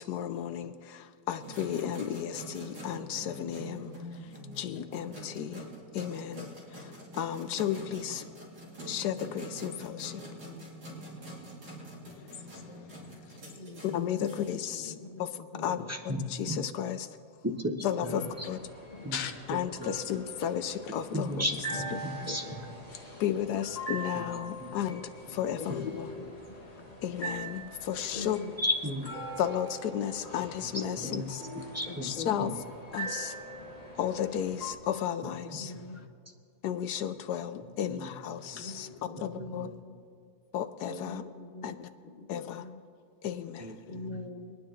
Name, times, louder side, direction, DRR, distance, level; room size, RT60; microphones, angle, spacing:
voice 1, 0.0-3.9 4.6-5.7 5.9-8.2 8.8-10.2 13.8-14.9 15.2-15.3 15.6-15.9 16.3-17.1 17.8-18.6 19.5-21.5 23.2-26.1 27.0-28.4 29.4-31.4 32.0-32.5 32.9-33.4 34.0-35.7 36.6-38.9 39.2-39.7 40.5-41.2 41.6-41.9 42.3-42.6 43.2-43.8, left 10 dB, 70° left, 1.1 m, -33 dB
sound 1, 1.4-15.2, right 1 dB, 80° right, 3.4 m, -45 dB
voice 2, 12.0-13.4 19.1-19.3 20.6-20.7 26.5-26.8 27.9-28.3 31.7-31.8 35.7-36.1 38.4-39.0, left 7 dB, 90° left, 1.7 m, -43 dB
voice 3, 13.6-14.3 14.7-15.3 15.5-15.8 18.1-18.5 18.9-19.1 21.7-22.5 25.6-25.7 26.0-26.5 28.1-28.5 30.9-31.2 31.9-32.6 35.4-36.0 38.6-40.0 40.9-41.7 42.0-42.8 43.9-44.6, left 3 dB, 45° left, 0.6 m, -43 dB
voice 4, 15.9-16.6 17.4-17.7 18.0-18.5 19.0-19.2 19.5-20.0 21.1-22.8 24.1-24.2 24.6-24.8 25.7-25.9 28.6-29.2 31.0-31.3 31.6-32.1 32.4-32.6 35.7-36.1 37.9-38.1 39.2-39.7 43.6-44.2, equal, 15° right, 0.6 m, -35 dB
sound 2, 18.1-34.7, right 1 dB, 20° left, 1.8 m, -42 dB
24.0 x 9.7 x 3.8 m
omnidirectional pair, 1.9 m